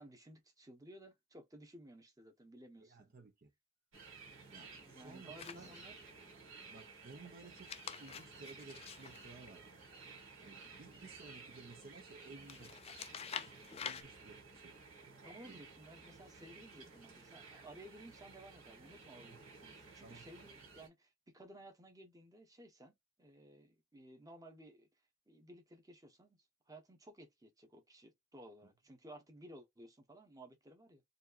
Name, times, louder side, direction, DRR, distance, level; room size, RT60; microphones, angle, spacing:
voice 1, 0.0-3.0 4.8-6.0 15.2-24.9 25.3-26.4 26.7-31.0, right 1 dB, 20° right, 1.1 m, -56 dB
voice 2, 2.8-3.5 4.5-5.7 6.7-9.9 10.4-12.7 13.3-14.8 15.1-15.6 19.2-19.5 20.0-20.3, right 3 dB, 50° right, 0.9 m, -56 dB
sound 1, 3.9-20.9, right 4 dB, 85° right, 2.2 m, -55 dB
sound 2, 5.4-6.1 7.5-10.1 12.4-14.0, left 7 dB, 30° left, 0.4 m, -48 dB
4.3 x 2.8 x 2.4 m
head